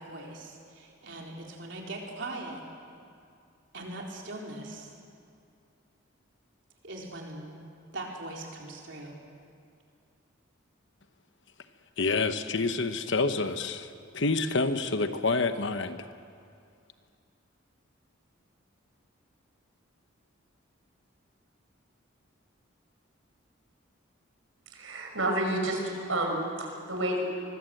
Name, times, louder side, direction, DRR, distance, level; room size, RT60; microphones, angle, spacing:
voice 1, 0.0-2.6 3.7-4.9 6.8-7.5 7.9-9.1, right 2 dB, 60° right, -1 dB, 4.1 m, -40 dB
voice 2, 12.0-13.9 14.1-16.1, left 3 dB, 60° left, 9 dB, 1.1 m, -28 dB
voice 3, 24.7-27.2, right 1 dB, 75° right, 1 dB, 5.8 m, -30 dB
25.0 x 21.0 x 8.0 m, 2.4 s
head